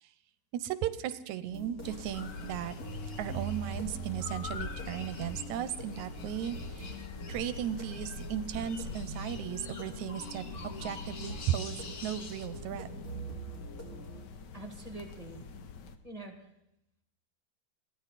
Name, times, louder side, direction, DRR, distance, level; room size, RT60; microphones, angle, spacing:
voice 1, 0.5-2.8 3.2-7.0 7.3-12.9, right 10 dB, 85° right, 13 dB, 2.2 m, -36 dB
sound 1, 1.5-14.2, right 2 dB, 30° left, 4.0 m, -43 dB
sound 2, 1.8-16.0, left 5 dB, 70° left, 1.0 m, -45 dB
sound 3, 2.1-12.5, left 5 dB, 45° left, 1.2 m, -48 dB
voice 2, 14.5-15.4 16.0-16.3, right 2 dB, 15° right, 3 dB, 1.9 m, -44 dB
22.0 x 16.0 x 4.2 m, 0.81 s
omnidirectional pair, 3.3 m